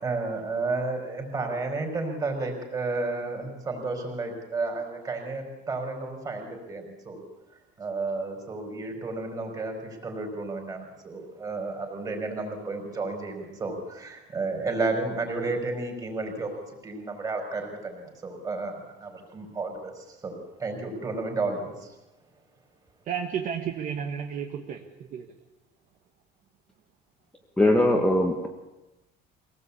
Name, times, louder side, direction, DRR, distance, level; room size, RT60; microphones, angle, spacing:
voice 1, 0.0-7.2 7.8-16.5 16.8-21.9, right 3 dB, 20° right, 3 dB, 4.8 m, -32 dB
voice 2, 23.1-25.3, right 7 dB, 40° right, 4 dB, 1.5 m, -32 dB
voice 3, 27.6-28.5, left 1 dB, 5° left, 1 dB, 1.6 m, -21 dB
24.0 x 18.0 x 8.5 m, 1.0 s
cardioid pair, 175°, 20 cm